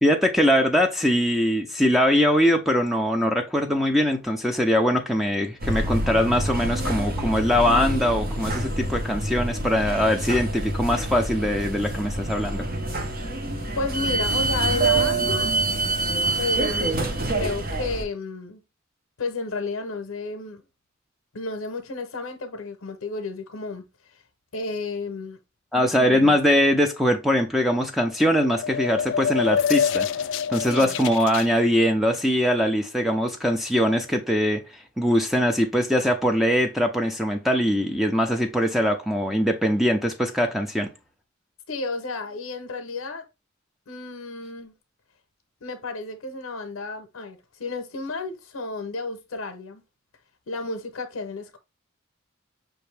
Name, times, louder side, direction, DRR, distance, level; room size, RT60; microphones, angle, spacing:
voice 1, 0.0-12.6 25.7-30.1 30.5-34.6 35.0-40.9, equal, ahead, 0.5 m, -22 dB
sound 1, 5.6-18.0, right 2 dB, 45° right, 1.0 m, -26 dB
voice 2, 13.7-15.5 16.3-17.0 17.3-18.6 19.2-20.6 21.3-23.8 24.5-25.4 25.7-26.4 30.6-30.9 41.7-43.2 43.9-44.7 45.6-49.8 50.5-51.6, left 3 dB, 85° left, 0.7 m, -32 dB
sound 2, 28.1-31.5, left 7 dB, 65° left, 0.3 m, -26 dB
5.7 x 2.6 x 3.2 m
head